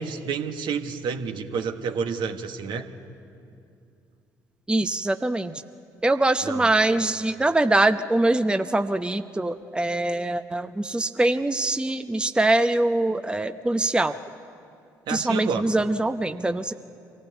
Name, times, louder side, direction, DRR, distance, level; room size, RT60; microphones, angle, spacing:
voice 1, 0.0-2.9 6.4-6.7 15.1-15.7, right 6 dB, 60° right, 6 dB, 1.4 m, -29 dB
voice 2, 4.7-5.6 6.0-14.2 15.1-16.7, right 2 dB, 10° right, 10 dB, 0.7 m, -23 dB
24.5 x 15.5 x 8.1 m, 2.6 s
hypercardioid pair, 50°, 9 cm